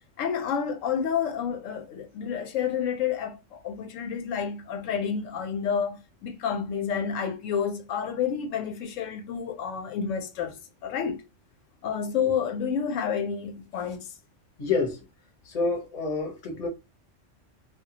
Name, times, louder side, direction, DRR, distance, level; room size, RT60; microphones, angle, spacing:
voice 1, 0.2-11.2 11.8-14.1, left 7 dB, 85° left, 0.9 m, -29 dB
voice 2, 14.6-15.0 15.4-16.7, left 4 dB, 35° left, 0.7 m, -28 dB
2.2 x 2.1 x 2.7 m
omnidirectional pair, 1.3 m